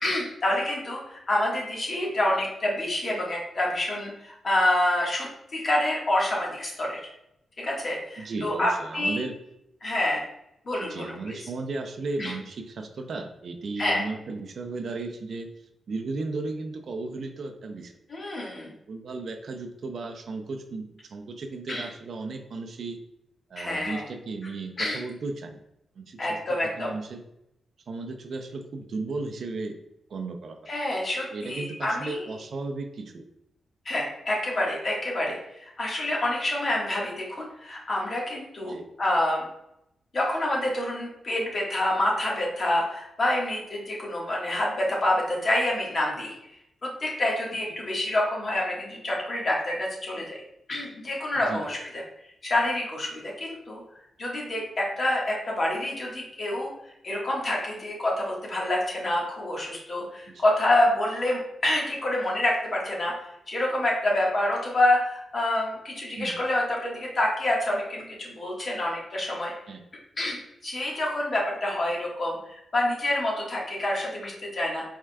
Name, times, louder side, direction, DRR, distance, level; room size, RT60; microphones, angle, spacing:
voice 1, 0.0-7.0 7.6-9.2 9.8-10.2 10.6-11.4 12.2-12.3 13.8-14.0 18.1-18.7 21.7-21.9 23.6-24.0 24.8-25.0 26.2-26.9 30.7-32.2 33.8-39.4 40.1-46.3 46.8-50.4 50.7-51.8 52.4-53.8 54.2-56.7 57.0-63.1 63.5-69.5 70.2-74.8, left 1 dB, 50° left, -2 dB, 1.4 m, -27 dB
voice 2, 8.2-9.3 10.9-15.5 15.9-17.9 18.9-23.0 23.5-25.6 26.0-26.2 26.8-27.2 27.9-29.8 30.1-30.6 31.3-33.2 38.6-38.9 51.3-51.6 60.3-60.4 66.2-66.3 69.7-69.8, right 3 dB, 65° right, 5 dB, 0.5 m, -35 dB
4.7 x 3.6 x 2.2 m, 0.80 s
cardioid pair, 65°, 0 cm